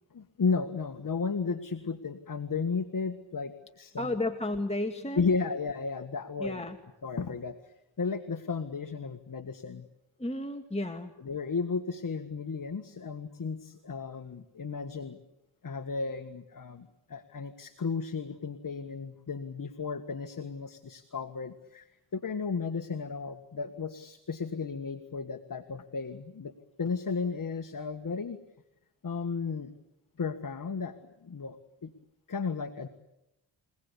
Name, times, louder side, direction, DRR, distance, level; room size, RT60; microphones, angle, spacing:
voice 1, 0.1-4.1 5.2-6.6 7.0-9.9 11.2-15.2 15.6-26.5 26.8-28.4 29.0-29.7 30.2-31.9 32.3-32.9, left 5 dB, 40° left, 8 dB, 1.8 m, -34 dB
voice 2, 4.0-5.3 6.4-6.8 10.2-11.1, left 1 dB, 15° left, 4 dB, 2.1 m, -33 dB
30.0 x 18.5 x 8.3 m, 0.92 s
cardioid pair, 65°, 48 cm